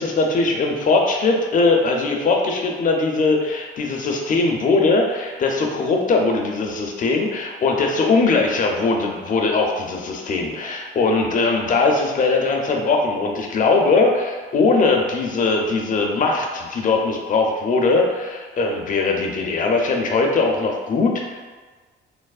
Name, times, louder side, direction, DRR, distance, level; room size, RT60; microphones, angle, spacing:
voice 1, 0.0-21.4, left 3 dB, 40° left, 1 dB, 0.5 m, -20 dB
3.2 x 2.0 x 2.3 m, 1.4 s
cardioid pair, 90°, 20 cm